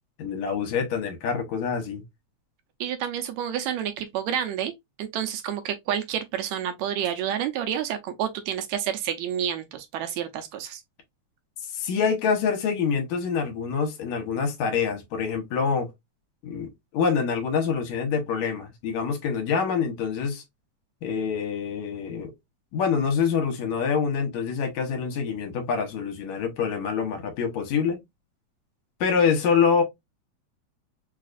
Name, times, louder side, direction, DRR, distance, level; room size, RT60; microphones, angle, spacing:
voice 1, 0.2-2.0 11.7-15.9 16.4-20.4 21.0-22.3 22.7-28.0 29.0-29.8, left 6 dB, 75° left, 2.2 m, -26 dB
voice 2, 2.8-4.7 5.0-10.8, right 9 dB, 80° right, 1.8 m, -29 dB
4.8 x 2.3 x 2.4 m
omnidirectional pair, 3.4 m